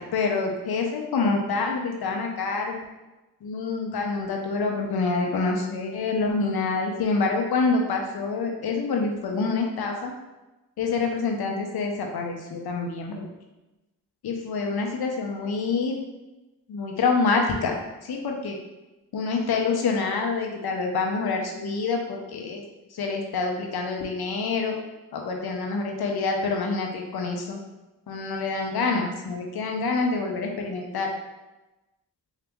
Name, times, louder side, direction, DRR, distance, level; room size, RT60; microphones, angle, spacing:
voice 1, 0.1-2.8 3.4-10.1 10.8-13.3 14.2-16.0 16.7-18.6 19.1-22.6 22.9-24.8 25.1-27.6 28.1-31.1, left 4 dB, 85° left, 2 dB, 0.7 m, -26 dB
3.9 x 2.8 x 3.5 m, 1.1 s
cardioid pair, 45°, 36 cm